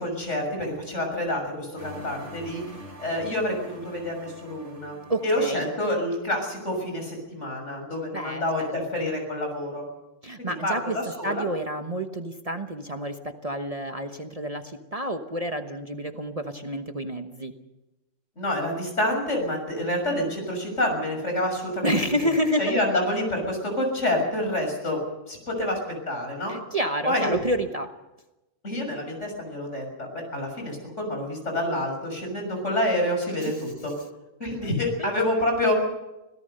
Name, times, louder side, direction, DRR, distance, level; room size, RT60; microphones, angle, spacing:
voice 1, 0.0-2.6 3.0-5.0 5.2-9.9 10.4-11.4 18.4-22.3 22.6-25.0 25.3-26.6 27.0-27.3 28.6-29.9 30.1-33.9 34.4-35.7, left 1 dB, 70° left, 2 dB, 6.9 m, -28 dB
sound 1, 1.8-6.2, equal, 60° right, 5.8 m, -45 dB
voice 2, 5.1-5.7 8.1-8.8 10.2-11.0 11.2-17.5 21.8-22.7 26.5-27.9 33.4-33.5 34.6-34.7 35.0-35.1, equal, 30° right, 6 dB, 1.1 m, -29 dB
25.5 x 17.5 x 6.7 m, 0.99 s
omnidirectional pair, 1.3 m